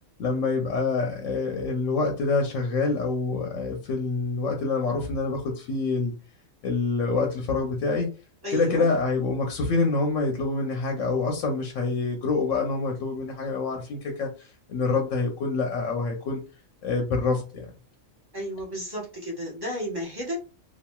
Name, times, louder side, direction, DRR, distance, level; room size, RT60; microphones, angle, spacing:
voice 1, 0.2-6.1 6.6-8.1 8.5-16.4 16.8-17.7, left 3 dB, 70° left, 2 dB, 0.9 m, -26 dB
voice 2, 8.4-8.9 18.3-20.4, equal, 20° right, -4 dB, 0.9 m, -32 dB
2.9 x 2.5 x 2.2 m, 0.33 s
omnidirectional pair, 1.4 m